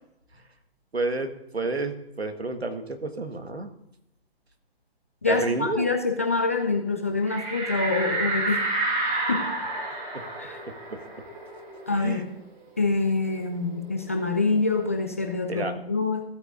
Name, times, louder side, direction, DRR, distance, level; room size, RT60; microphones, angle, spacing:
voice 1, 0.9-1.9 2.2-3.7 5.3-5.8 11.9-12.2 15.5-15.7, right 3 dB, 85° right, 7 dB, 1.5 m, -29 dB
voice 2, 5.2-8.6 9.3-9.5 10.4-10.6 11.9-12.3 12.8-16.2, left 3 dB, 15° left, 4 dB, 0.3 m, -26 dB
sound 1, 7.3-12.5 12.8-12.9 13.2-14.9, right 2 dB, 25° right, 1.8 m, -30 dB
15.5 x 8.5 x 2.6 m, 0.85 s
figure-of-eight pair, 130°, 31 cm